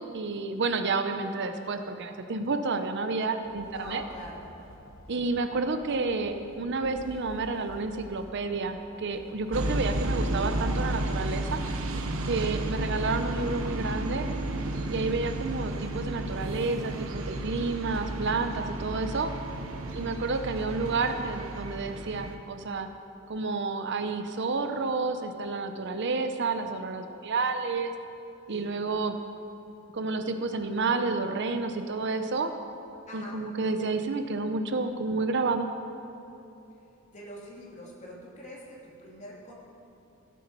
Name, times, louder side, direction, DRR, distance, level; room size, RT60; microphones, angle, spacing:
voice 1, 0.0-4.0 5.1-11.6 12.2-14.3 14.9-19.3 19.9-22.9 23.3-27.9 28.5-29.1 29.9-32.5 33.1-35.7, right 3 dB, 55° right, 7 dB, 0.7 m, -30 dB
sound 1, 3.4-22.7, left 1 dB, 70° left, 1.3 m, -50 dB
voice 2, 3.6-4.4 19.6-20.3 28.5-28.7 33.1-33.4 37.1-39.5, equal, 35° left, -4 dB, 2.7 m, -45 dB
sound 2, 9.5-22.4, right 1 dB, 80° right, 0.9 m, -32 dB
16.0 x 8.5 x 5.4 m, 2.9 s
head